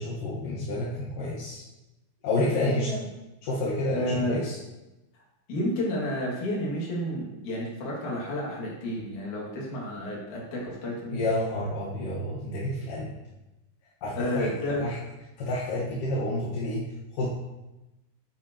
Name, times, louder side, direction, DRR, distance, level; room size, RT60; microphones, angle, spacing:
voice 1, 0.0-1.6 2.2-3.1 3.4-4.6 11.1-13.1 14.0-14.5 14.8-15.0 15.4-17.3, left 1 dB, 65° left, -7 dB, 2.3 m, -29 dB
voice 2, 3.9-4.4 5.5-11.2 14.2-14.9, left 1 dB, 50° left, -4 dB, 3.0 m, -31 dB
10.5 x 9.1 x 3.0 m, 1.0 s
omnidirectional pair, 5.5 m